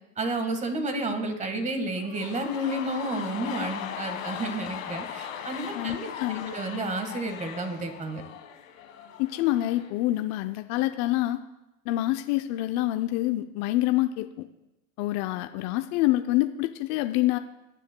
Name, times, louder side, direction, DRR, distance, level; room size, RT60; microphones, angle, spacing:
voice 1, 0.2-6.1 6.3-8.2, right 1 dB, 20° right, 6 dB, 1.5 m, -31 dB
sound 1, 1.9-10.0 10.3-10.4, left 9 dB, 85° left, 1.6 m, -39 dB
voice 2, 5.7-6.5 9.2-11.4 11.9-14.5 15.0-17.4, left 16 dB, 45° left, 8 dB, 0.5 m, -26 dB
18.5 x 10.0 x 2.2 m, 0.96 s
supercardioid pair, 120°, 38 cm